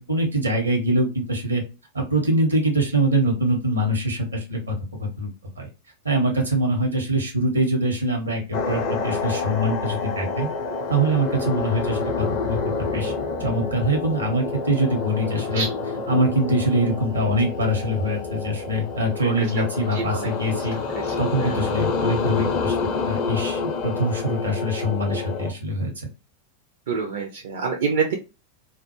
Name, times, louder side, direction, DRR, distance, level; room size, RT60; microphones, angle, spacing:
voice 1, 0.0-1.6 1.9-5.3 5.6-5.7 6.0-10.5 10.9-13.1 13.4-15.6 16.1-20.8 21.2-22.8 23.0-26.1, right 1 dB, 80° right, 2 dB, 0.9 m, -23 dB
sound 1, 8.5-25.5, left 4 dB, 45° left, 0.5 m, -28 dB
voice 2, 19.9-20.3 20.9-21.7 26.9-28.1, right 5 dB, 55° right, 2 dB, 0.4 m, -27 dB
2.2 x 2.0 x 2.9 m, 0.29 s
figure-of-eight pair, 90°, 0 cm